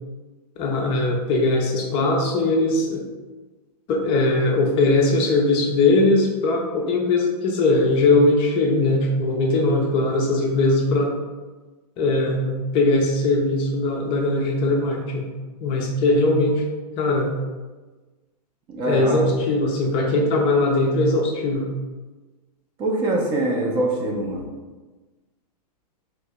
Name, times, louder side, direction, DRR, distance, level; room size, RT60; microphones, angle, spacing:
voice 1, 0.6-3.0 3.9-11.1 12.0-15.3 15.6-16.6 17.0-17.3 18.9-21.7, left 2 dB, 25° left, 0 dB, 0.4 m, -20 dB
voice 2, 18.7-19.2 22.8-24.5, right 2 dB, 25° right, 0 dB, 0.5 m, -23 dB
3.0 x 2.6 x 3.4 m, 1.3 s
figure-of-eight pair, 115°, 21 cm